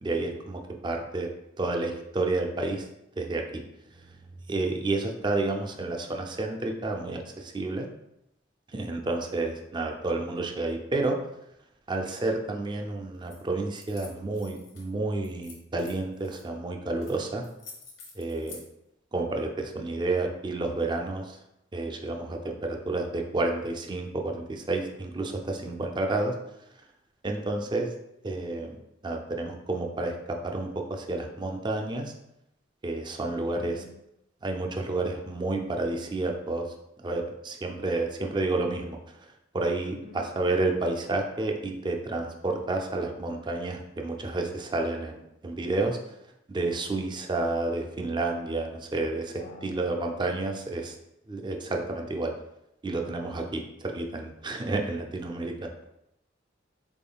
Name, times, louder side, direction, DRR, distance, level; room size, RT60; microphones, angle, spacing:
voice 1, 0.0-1.3 1.6-2.9 3.2-3.6 3.9-4.0 4.5-7.9 8.7-11.2 11.9-17.4 18.2-18.6 19.1-21.4 21.7-26.3 27.2-27.9 28.2-28.8 29.0-32.1 32.8-33.8 34.4-36.7 37.0-39.0 39.5-46.0 46.5-50.9 51.3-52.3 52.8-55.7, right 2 dB, 25° right, 3 dB, 0.4 m, -30 dB
sound 1, 13.2-13.4 13.7-14.9 15.2-16.4 17.0-17.2 17.4-18.6, left 4 dB, 80° left, 1.0 m, -48 dB
voice 2, 27.3-27.7 33.5-34.0 39.9-40.2 49.3-49.8, left 2 dB, 45° left, 2 dB, 0.5 m, -47 dB
3.8 x 3.6 x 2.3 m, 0.84 s
head